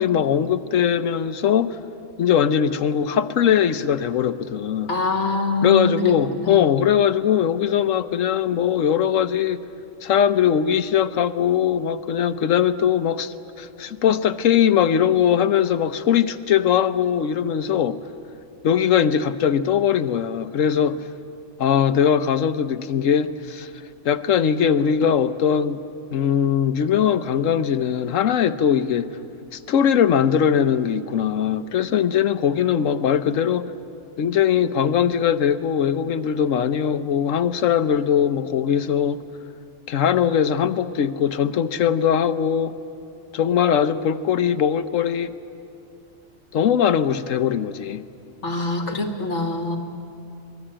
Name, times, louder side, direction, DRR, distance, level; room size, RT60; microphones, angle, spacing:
voice 1, 0.0-1.8 2.2-4.9 5.6-9.6 10.0-18.0 18.6-21.0 21.6-23.7 24.0-25.8 26.1-29.1 29.5-33.7 34.2-39.2 39.9-42.8 43.3-45.3 46.5-48.0, left 8 dB, 85° left, 1.2 m, -20 dB
voice 2, 4.9-6.7 48.4-49.8, left 2 dB, 65° left, 1.9 m, -25 dB
25.0 x 20.5 x 8.9 m
omnidirectional pair, 1.3 m